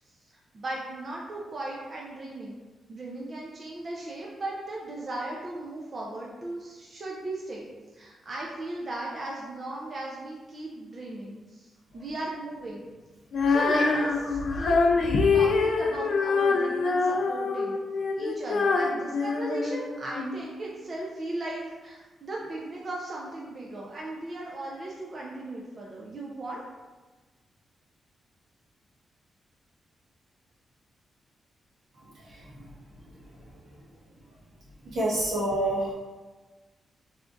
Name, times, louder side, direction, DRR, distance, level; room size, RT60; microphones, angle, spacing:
voice 1, 0.5-2.6 2.9-12.8 13.5-17.8 18.2-26.6, right 2 dB, 35° right, -3 dB, 0.5 m, -37 dB
Female singing, 13.3-20.4, left 4 dB, 55° left, 0.3 m, -25 dB
voice 2, 32.1-32.7 33.3-33.4 34.8-35.9, right 1 dB, 75° right, -8 dB, 1.4 m, -29 dB
3.4 x 2.4 x 3.8 m, 1.3 s
wide cardioid pair, 150°, 0 cm